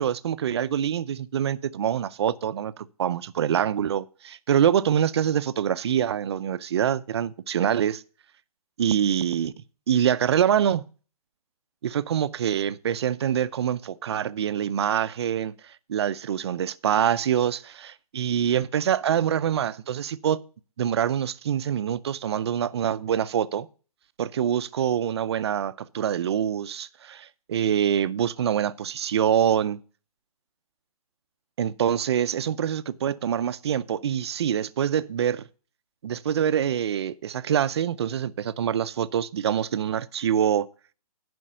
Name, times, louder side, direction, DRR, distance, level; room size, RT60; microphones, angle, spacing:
voice 1, 0.0-8.0 8.8-9.5 9.9-10.8 11.8-15.5 15.9-20.4 20.8-23.7 24.2-29.8 31.6-35.4 36.0-40.7, right 9 dB, 45° right, 0.5 m, -25 dB
11.0 x 5.2 x 6.6 m
hypercardioid pair, 160°, 19 cm